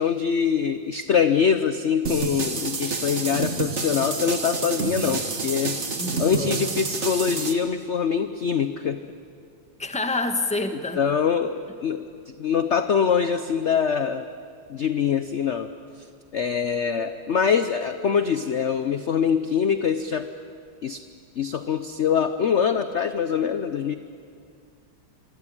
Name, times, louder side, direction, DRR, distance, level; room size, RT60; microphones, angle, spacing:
voice 1, 0.0-5.8 6.2-9.1 10.9-12.1 12.4-14.3 14.7-15.7 16.3-20.3 20.8-21.0 21.4-23.9, left 7 dB, 50° left, 10 dB, 0.8 m, -24 dB
sound 1, 2.1-7.5, right 4 dB, 35° right, 2.0 m, -28 dB
voice 2, 6.0-6.8 9.8-11.0, left 2 dB, 5° left, 7 dB, 1.1 m, -28 dB
25.5 x 25.5 x 8.7 m, 2.2 s
omnidirectional pair, 2.1 m